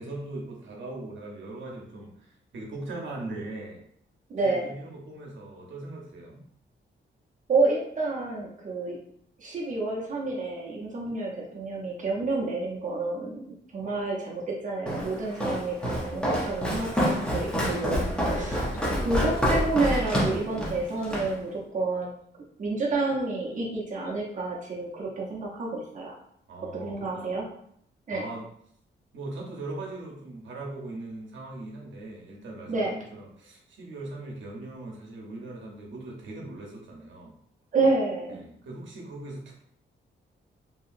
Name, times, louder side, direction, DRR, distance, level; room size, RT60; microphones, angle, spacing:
voice 1, 0.0-3.8 4.4-6.4 18.7-19.2 26.5-27.4 28.1-28.5 29.1-37.3 38.3-39.6, right 2 dB, 75° right, -1 dB, 0.9 m, -40 dB
voice 2, 4.3-4.7 7.5-9.0 9.4-13.4 13.7-18.6 19.0-22.1 22.6-26.2 26.7-27.4 28.1-28.2 32.7-32.9 37.7-38.5, right 3 dB, 40° right, -4 dB, 0.7 m, -29 dB
Walk footsteps, 14.9-21.3, equal, 5° left, 0.6 m, -27 dB
2.8 x 2.8 x 2.5 m, 0.69 s
wide cardioid pair, 155°, 19 cm